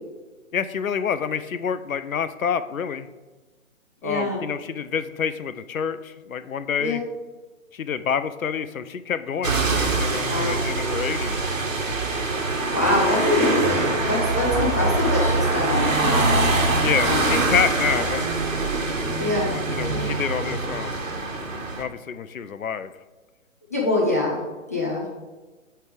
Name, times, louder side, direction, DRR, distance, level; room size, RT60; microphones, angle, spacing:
voice 1, 0.5-3.1 4.0-7.0 7.7-11.4 16.8-18.2 19.5-21.0 21.8-22.9, left 7 dB, 85° left, 13 dB, 0.6 m, -27 dB
voice 2, 4.0-4.4 6.8-7.0 10.3-10.6 12.7-16.3 17.0-17.4 19.2-19.5 19.9-20.0 23.7-24.4 24.7-25.0, left 2 dB, 15° left, -4 dB, 0.4 m, -24 dB
sound 1, 9.4-21.8, right 3 dB, 75° right, 1.5 m, -24 dB
8.0 x 3.4 x 5.0 m, 1.3 s
figure-of-eight pair, 145°, 40 cm